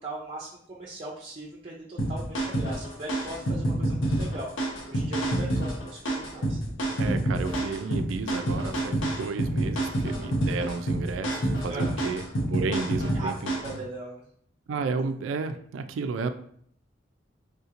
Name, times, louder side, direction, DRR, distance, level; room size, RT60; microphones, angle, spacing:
voice 1, 0.0-6.6 11.7-12.0 13.1-14.3, right 2 dB, 30° right, -2 dB, 0.5 m, -39 dB
sound 1, 2.0-13.8, right 1 dB, 90° left, 0.8 m, -28 dB
voice 2, 7.0-13.8 14.7-16.3, right 4 dB, 90° right, 9 dB, 0.3 m, -32 dB
3.6 x 2.8 x 2.5 m, 0.65 s
head